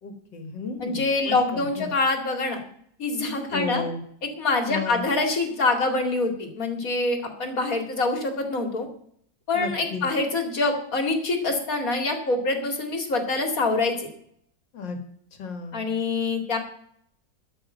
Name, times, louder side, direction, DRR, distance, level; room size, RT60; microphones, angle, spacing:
voice 1, 0.0-1.9 3.5-4.0 4.7-5.0 9.5-10.0 14.7-15.0 15.4-15.8, left 4 dB, 85° left, 6 dB, 2.6 m, -33 dB
voice 2, 0.8-2.6 3.0-3.8 4.4-8.9 9.5-14.1 15.7-16.6, left 3 dB, 50° left, 4 dB, 2.8 m, -25 dB
13.0 x 6.3 x 9.0 m, 0.65 s
omnidirectional pair, 1.9 m